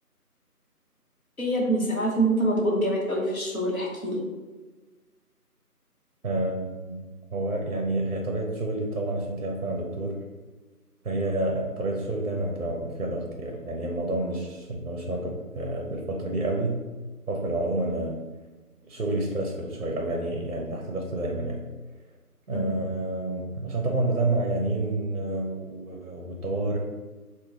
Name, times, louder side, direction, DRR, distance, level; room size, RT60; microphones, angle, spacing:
voice 1, 1.4-4.2 22.5-22.8, right 1 dB, 60° left, -3 dB, 1.0 m, -25 dB
voice 2, 6.2-7.0 7.3-10.2 11.0-16.8 17.3-18.2 18.8-21.6 22.5-26.8, right 2 dB, 60° right, 1 dB, 0.5 m, -29 dB
3.0 x 2.2 x 3.7 m, 1.3 s
figure-of-eight pair, 180°, 47 cm